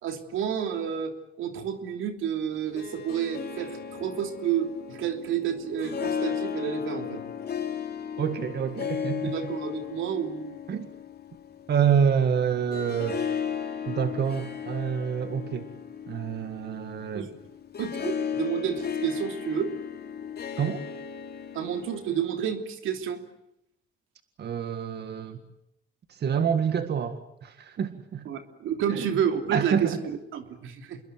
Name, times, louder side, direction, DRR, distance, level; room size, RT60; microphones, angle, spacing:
voice 1, 0.0-7.2 9.2-10.6 17.1-17.3 17.8-19.7 21.5-23.2 28.2-31.0, right 8 dB, 85° right, 6 dB, 3.2 m, -30 dB
Harp, 2.5-22.4, left 7 dB, 55° left, 3.7 m, -35 dB
voice 2, 8.2-9.3 10.7-10.9 11.7-13.2 13.9-15.7 16.1-17.3 20.6-20.8 24.4-25.4 26.1-28.3 28.9-29.1 29.5-30.0, right 7 dB, 55° right, 9 dB, 2.0 m, -27 dB
28.0 x 22.0 x 9.4 m, 0.79 s
cardioid pair, 90°, 20 cm